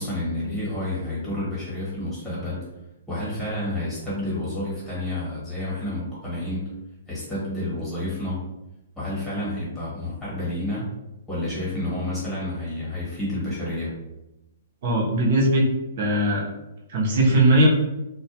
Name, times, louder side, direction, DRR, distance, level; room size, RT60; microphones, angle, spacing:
voice 1, 0.0-2.6 3.1-6.7 7.1-8.4 9.0-10.9 11.3-13.9, left 1 dB, 5° left, -8 dB, 1.1 m, -29 dB
voice 2, 14.8-15.7 16.0-16.4 16.9-17.7, right 1 dB, 45° right, -2 dB, 0.7 m, -19 dB
2.2 x 2.2 x 2.7 m, 0.95 s
hypercardioid pair, 165°, 0 cm